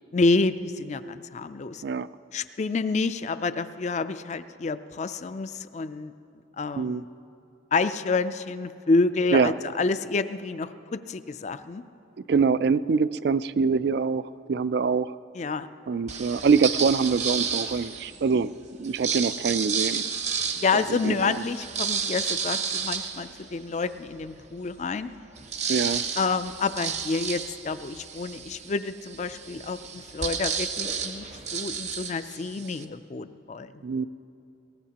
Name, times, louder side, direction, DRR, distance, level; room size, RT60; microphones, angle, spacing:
voice 1, 0.1-1.8 2.3-6.1 6.6-7.0 7.7-11.8 15.3-15.7 20.6-25.1 26.2-31.3 31.5-33.7, left 3 dB, 35° left, 12 dB, 0.4 m, -28 dB
voice 2, 12.3-15.1 15.9-18.5 18.8-20.1 20.7-21.3 25.7-26.1 33.8-34.1, right 5 dB, 55° right, 16 dB, 0.3 m, -24 dB
sound 1, 16.1-18.2 18.8-24.0 24.5-24.6 24.8-32.8, right 6 dB, 35° right, 0.7 m, -32 dB
22.0 x 18.0 x 2.9 m, 2.7 s
head